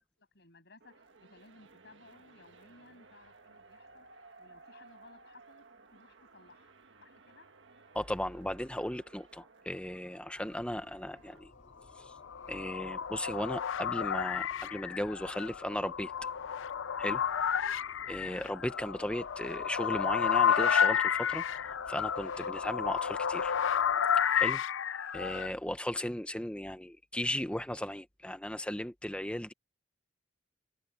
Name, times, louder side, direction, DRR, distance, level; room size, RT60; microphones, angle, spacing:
voice 1, 0.2-4.1 4.4-6.7 7.0-7.5, left 2 dB, 60° left, 7.6 m, -59 dB
sound 1, 0.8-11.4, right 3 dB, 65° right, 1.6 m, -58 dB
voice 2, 7.9-11.5 12.0-12.1 12.5-16.1 17.0-17.2 18.1-21.4 21.9-23.5 24.3-24.6 25.1-29.5, left 1 dB, 5° left, 0.9 m, -36 dB
sound 2, 10.3-24.0, left 1 dB, 40° left, 3.3 m, -61 dB
sound 3, 12.1-25.5, left 8 dB, 75° left, 0.5 m, -31 dB
head